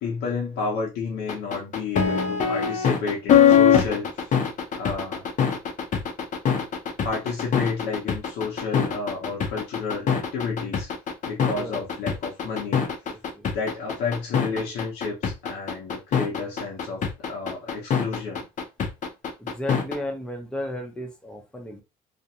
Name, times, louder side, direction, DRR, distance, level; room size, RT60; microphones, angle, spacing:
voice 1, 0.0-4.4 4.8-5.2 7.0-10.9 11.2-12.8 13.5-18.4, left 4 dB, 80° left, 0.8 m, -31 dB
sound 1, 1.3-20.0, left 7 dB, 50° left, 0.7 m, -22 dB
voice 2, 11.5-11.9 13.1-13.5 19.4-21.8, left 1 dB, 5° left, 0.7 m, -34 dB
2.5 x 2.2 x 2.7 m
cardioid pair, 110°, 17 cm